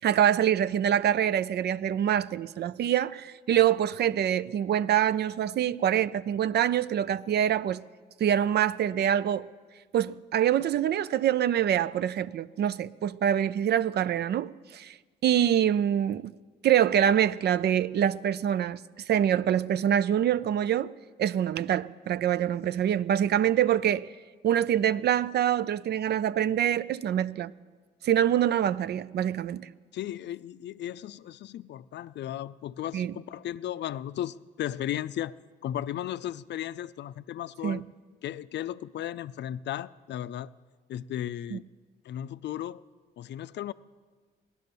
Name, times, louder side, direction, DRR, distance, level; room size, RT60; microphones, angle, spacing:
voice 1, 0.0-7.8 8.2-9.5 9.9-15.0 15.2-16.3 16.6-18.8 19.1-20.9 21.2-24.1 24.4-27.5 28.0-29.7 32.9-33.1 37.6-37.8 41.5-41.6, right 10 dB, 55° right, 0.4 m, -25 dB
voice 2, 29.9-35.3 35.6-37.8 38.2-40.5 40.9-41.6 42.0-42.8 43.2-43.7, left 11 dB, 60° left, 0.5 m, -35 dB
16.0 x 11.5 x 6.8 m
cardioid pair, 90°, 20 cm